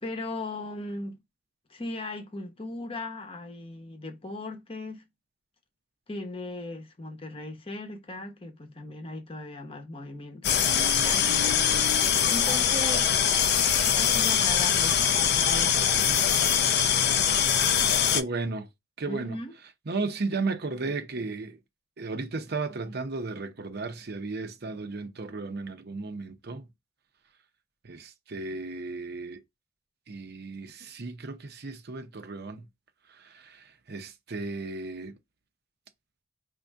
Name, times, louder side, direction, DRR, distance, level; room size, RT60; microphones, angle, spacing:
voice 1, 0.0-1.2 1.7-5.0 6.1-11.8 12.3-13.2 13.9-16.8 19.1-19.5, left 2 dB, 25° left, 0.9 m, -38 dB
sound 1, 10.4-18.2, left 8 dB, 55° left, 0.5 m, -23 dB
voice 2, 18.1-18.7 19.0-19.4 19.9-21.6 22.0-26.7 27.8-29.4 30.1-32.7 33.1-35.2, right 3 dB, 50° right, 0.7 m, -34 dB
5.3 x 2.7 x 3.5 m
head